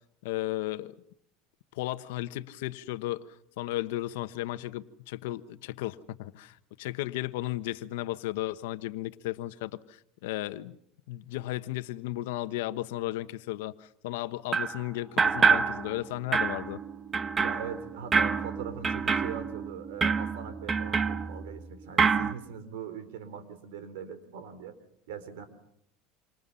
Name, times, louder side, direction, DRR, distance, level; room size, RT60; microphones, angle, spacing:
voice 1, 0.2-0.9 1.7-3.2 3.6-10.8 11.1-16.8, left 16 dB, 85° left, 11 dB, 1.2 m, -34 dB
sound 1, 14.5-14.8 15.2-16.1 16.3-21.7 22.0-22.3, right 5 dB, 20° right, 1.1 m, -27 dB
voice 2, 17.4-24.7 25.1-25.4, right 7 dB, 85° right, 11 dB, 4.2 m, -41 dB
27.5 x 27.5 x 5.7 m, 0.71 s
supercardioid pair, 135°, 0 cm